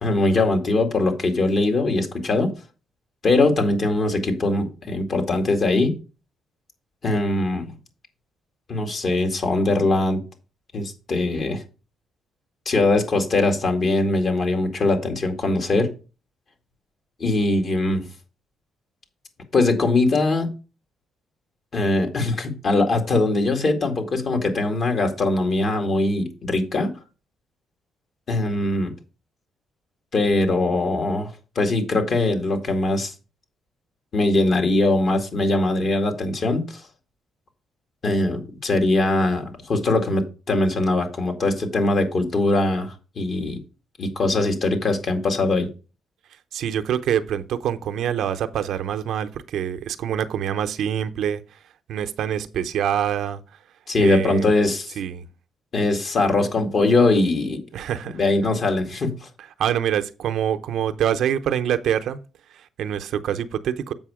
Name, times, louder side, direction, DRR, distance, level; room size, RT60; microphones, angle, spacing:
voice 1, 0.0-2.5 3.2-6.0 7.0-7.8 8.7-10.2 10.7-11.6 12.7-15.9 17.2-18.0 19.5-20.5 21.7-26.9 28.3-28.9 30.1-31.3 31.6-33.1 34.1-36.8 38.0-43.6 44.0-45.7 53.9-55.0 55.7-57.6 58.1-59.3, left 2 dB, 50° left, 2.0 m, -21 dB
voice 2, 46.5-51.4 51.9-53.4 54.0-54.5 55.0-55.3 57.7-58.2 59.6-62.2 62.5-63.9, right 9 dB, 75° right, 0.6 m, -25 dB
7.6 x 5.5 x 4.9 m
cardioid pair, 90°, 0 cm